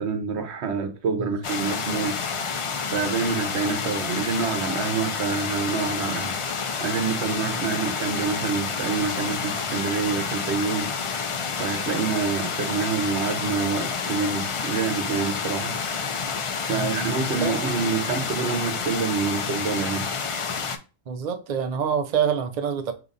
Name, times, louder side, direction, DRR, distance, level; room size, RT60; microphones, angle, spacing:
voice 1, 0.0-2.6 2.9-6.4 6.8-10.9 11.6-15.7 16.7-20.1, right 5 dB, 80° right, 1.0 m, -27 dB
sound 1, 1.4-20.8, left 5 dB, 60° left, 0.3 m, -29 dB
voice 2, 16.7-17.9 21.1-22.9, right 7 dB, 45° right, 0.6 m, -27 dB
5.2 x 2.8 x 2.5 m
omnidirectional pair, 1.1 m